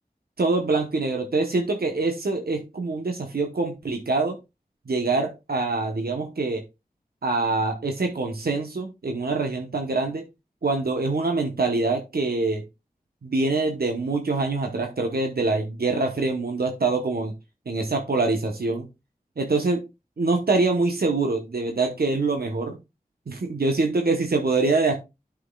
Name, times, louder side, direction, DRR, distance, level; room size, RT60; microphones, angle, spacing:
voice 1, 0.4-4.4 4.9-6.6 7.2-10.2 10.6-12.6 13.2-17.3 17.7-18.9 19.4-19.8 20.2-22.8 23.3-24.9, right 3 dB, 90° right, 3 dB, 1.0 m, -24 dB
11.0 x 6.2 x 2.3 m, 0.24 s
wide cardioid pair, 55°, 15 cm